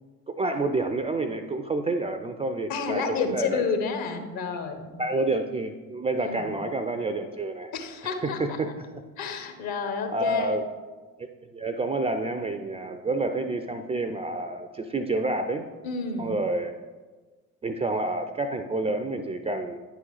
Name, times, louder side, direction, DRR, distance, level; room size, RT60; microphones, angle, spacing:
voice 1, 0.3-3.6 5.0-7.7 8.0-8.7 10.1-10.7 11.2-15.6 16.2-16.8 17.6-19.8, right 2 dB, 15° right, 7 dB, 0.4 m, -29 dB
voice 2, 2.7-5.0 6.2-6.4 7.7-8.4 9.2-10.6 15.8-16.4, left 5 dB, 55° left, 7 dB, 1.2 m, -30 dB
9.5 x 3.9 x 4.8 m, 1.3 s
figure-of-eight pair, 55°, 43 cm